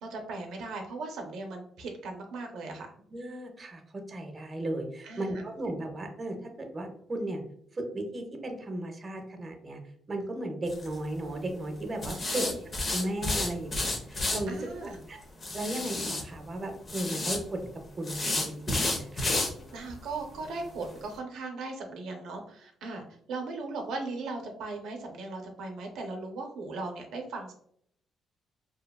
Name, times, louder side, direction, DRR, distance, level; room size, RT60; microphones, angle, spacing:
voice 1, 0.0-2.9 5.0-5.4 12.2-12.6 14.5-15.0 19.7-23.0 23.3-27.5, right 3 dB, 80° right, 2 dB, 0.4 m, -38 dB
voice 2, 3.1-7.4 7.7-9.8 10.1-12.5 12.9-14.6 14.8-15.2 15.5-17.7 18.0-19.3, right 1 dB, 30° right, 4 dB, 0.5 m, -35 dB
sound 1, 10.7-10.9 12.0-14.4 15.4-16.2 16.9-17.4 18.0-19.5 19.9-20.0 20.4-20.5 20.9-21.0, left 2 dB, 35° left, 0.6 m, -30 dB
2.7 x 2.2 x 2.2 m, 0.66 s
cardioid pair, 90°, 0 cm